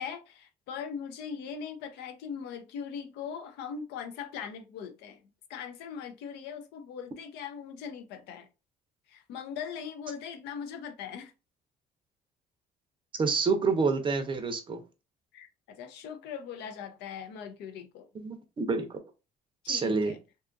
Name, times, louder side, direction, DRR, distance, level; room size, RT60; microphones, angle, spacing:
voice 1, 0.0-5.2 5.5-8.5 9.1-11.3 15.3-15.5 15.8-18.1 19.6-20.2, left 7 dB, 85° left, 0.5 m, -40 dB
voice 2, 13.2-14.8 18.1-18.8 19.7-20.1, right 4 dB, 30° right, 0.5 m, -27 dB
2.6 x 2.3 x 2.4 m
cardioid pair, 110°, 17 cm